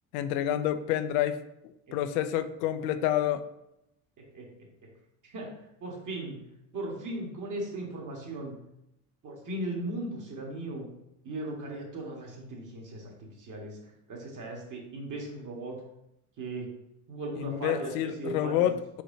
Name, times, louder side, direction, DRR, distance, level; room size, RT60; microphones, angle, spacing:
voice 1, 0.1-1.4 1.9-3.4 17.4-19.0, left 11 dB, 80° left, 11 dB, 0.5 m, -28 dB
voice 2, 5.8-6.4 6.7-8.5 9.2-10.9 11.2-13.1 13.4-13.8 14.1-15.8 16.4-16.7 17.1-18.7, right 2 dB, 45° right, 0 dB, 1.6 m, -37 dB
4.6 x 4.2 x 2.7 m, 0.83 s
supercardioid pair, 80°, 44 cm